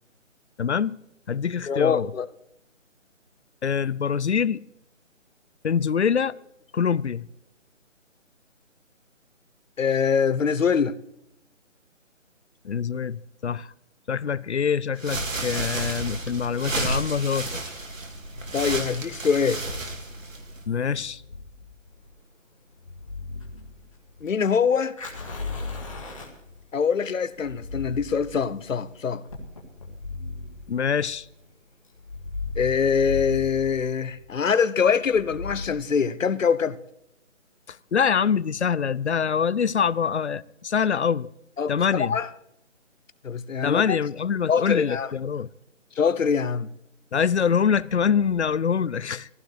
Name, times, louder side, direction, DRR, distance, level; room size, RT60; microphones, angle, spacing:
voice 1, 0.6-1.0 1.3-2.1 3.6-4.6 5.6-6.3 6.7-7.3 12.6-13.7 14.1-17.6 20.7-21.2 30.7-31.3 37.7-41.3 41.7-42.2 43.6-45.5 47.1-49.3, left 7 dB, 60° left, 0.5 m, -24 dB
voice 2, 1.7-2.3 9.8-10.9 18.5-19.6 24.2-25.0 26.7-29.2 32.6-36.8 41.6-42.3 43.2-44.0 44.5-45.1 46.0-46.7, left 6 dB, 80° left, 0.9 m, -24 dB
sound 1, 14.9-20.6, right 2 dB, 80° right, 2.4 m, -31 dB
sound 2, 21.3-22.0 22.8-24.4 25.0-26.8 27.3-28.9 29.7-31.4 32.0-34.5 35.1-35.7, left 3 dB, 45° left, 0.9 m, -37 dB
Fire, 21.9-32.9, left 3 dB, 25° left, 1.7 m, -45 dB
16.5 x 15.0 x 3.3 m
hypercardioid pair, 180°, 39 cm